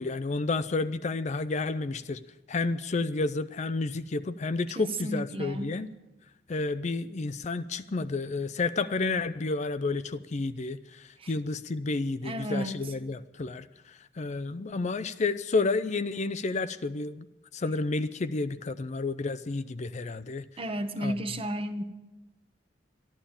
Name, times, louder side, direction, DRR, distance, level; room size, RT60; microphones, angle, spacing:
voice 1, 0.0-2.2 2.5-5.9 6.5-17.3 17.5-20.4 21.0-21.1, left 3 dB, 40° left, 13 dB, 0.5 m, -31 dB
voice 2, 4.8-5.8 11.2-11.3 12.2-12.8 20.6-21.8, right 1 dB, 30° right, 7 dB, 1.0 m, -33 dB
13.0 x 11.5 x 8.7 m, 1.1 s
head